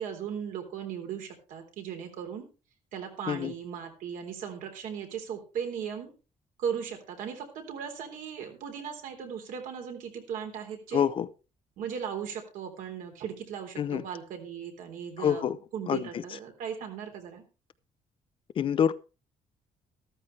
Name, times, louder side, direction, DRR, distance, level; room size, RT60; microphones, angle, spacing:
voice 1, 0.0-2.4 2.9-6.1 6.6-11.1 11.8-17.4, right 7 dB, 80° right, 4 dB, 3.4 m, -37 dB
voice 2, 10.9-11.3 13.8-14.0 15.2-15.6 15.9-16.1 18.6-19.0, left 8 dB, 40° left, 14 dB, 0.7 m, -26 dB
13.5 x 13.5 x 3.3 m, 0.32 s
cardioid pair, 180°, 13 cm